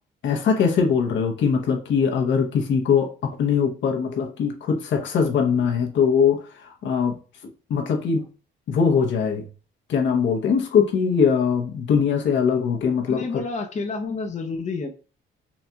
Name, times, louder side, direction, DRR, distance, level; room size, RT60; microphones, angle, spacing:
voice 1, 0.2-7.2 7.7-8.3 8.7-9.5 9.9-13.4, left 6 dB, 70° left, 3 dB, 0.9 m, -21 dB
voice 2, 13.1-14.9, left 4 dB, 35° left, 3 dB, 0.6 m, -29 dB
4.0 x 2.7 x 2.2 m, 0.36 s
cardioid pair, 90°, 20 cm